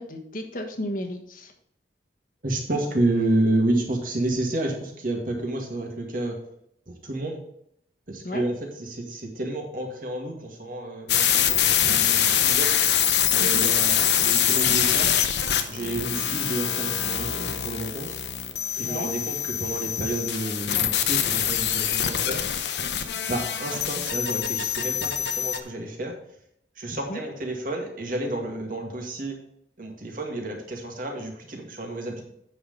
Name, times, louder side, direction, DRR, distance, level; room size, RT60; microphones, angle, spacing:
voice 1, 0.0-1.5 8.2-8.5 13.4-13.6 18.8-19.1 27.1-27.2, left 1 dB, 50° left, 4 dB, 1.3 m, -33 dB
voice 2, 2.4-6.4 6.9-7.4 8.1-12.8 13.3-15.1 15.7-18.2 18.8-22.4 22.9-26.2 26.8-29.4 29.8-32.2, right 1 dB, 50° right, 1 dB, 2.1 m, -30 dB
sound 1, 11.1-25.6, left 10 dB, 75° left, 0.8 m, -24 dB
8.6 x 5.9 x 5.3 m, 0.74 s
head